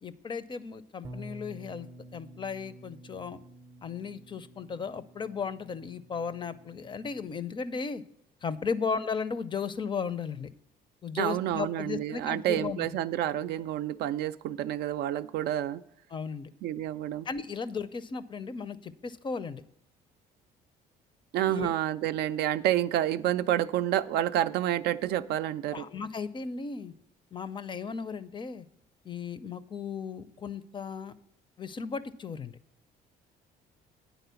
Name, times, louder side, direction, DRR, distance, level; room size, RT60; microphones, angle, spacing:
voice 1, 0.0-3.4 3.8-8.0 8.4-10.5 11.0-13.0 16.1-16.5 17.2-19.6 21.3-21.7 25.7-26.9 27.3-28.7 29.0-31.1 31.6-32.6, left 5 dB, 30° left, 15 dB, 0.4 m, -35 dB
Bass guitar, 1.0-7.3, equal, 20° right, 0.6 m, -49 dB
voice 2, 11.1-15.8 16.6-17.3 21.3-25.9, right 12 dB, 75° right, 12 dB, 0.4 m, -29 dB
9.3 x 4.0 x 6.8 m, 0.76 s
cardioid pair, 110°, 17 cm